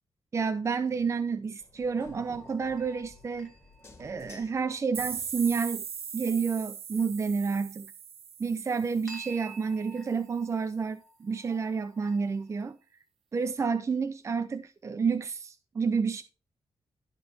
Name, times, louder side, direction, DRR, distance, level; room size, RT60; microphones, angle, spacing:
voice 1, 0.3-3.5 4.0-5.8 6.1-7.9 8.4-12.8 13.3-16.2, right 5 dB, 30° right, 0.6 m, -30 dB
sound 1, 1.6-5.7, left 1 dB, 25° left, 2.0 m, -54 dB
sound 2, 2.0-4.8 9.1-12.6, right 3 dB, ahead, 1.8 m, -51 dB
sound 3, 4.9-9.6, right 7 dB, 80° right, 1.2 m, -40 dB
13.0 x 5.7 x 4.3 m
wide cardioid pair, 165°, 10 cm